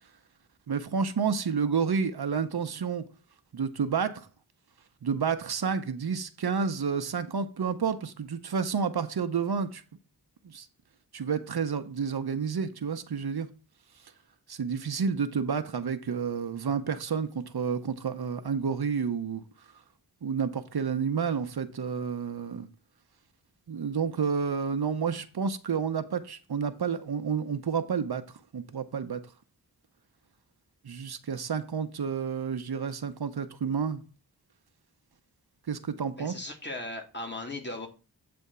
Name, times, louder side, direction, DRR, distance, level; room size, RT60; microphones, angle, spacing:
voice 1, 0.7-3.0 3.5-4.3 5.0-9.8 10.4-10.7 11.1-13.5 14.5-19.4 20.2-22.7 23.7-28.2 28.5-29.2 30.8-34.0 35.7-36.4, right 6 dB, 75° right, 0.9 m, -30 dB
voice 2, 36.2-37.9, left 2 dB, 25° left, 2.2 m, -37 dB
8.5 x 3.5 x 6.7 m
wide cardioid pair, 70°, 39 cm